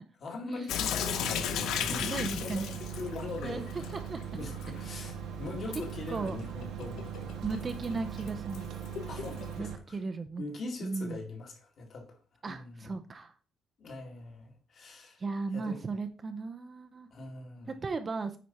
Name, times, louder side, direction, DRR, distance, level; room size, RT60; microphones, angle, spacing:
voice 1, 0.2-4.0 4.3-7.5 9.1-10.0 10.4-12.2 12.4-12.9 13.8-15.2 15.5-15.8 17.1-17.8, left 3 dB, 40° left, 2.0 m, -42 dB
Sink (filling or washing) / Drip, 0.7-9.6, left 9 dB, 75° left, 0.8 m, -37 dB
sound 1, 1.0-9.8, right 9 dB, 80° right, 1.3 m, -40 dB
voice 2, 2.0-2.8 3.4-3.6 3.9-4.2 6.1-6.4 7.4-8.6 9.6-10.4 10.8-11.2 12.4-13.3 15.2-17.1 17.8-18.4, right 4 dB, 25° right, 0.6 m, -36 dB
9.3 x 4.9 x 4.2 m
cardioid pair, 165°, 0 cm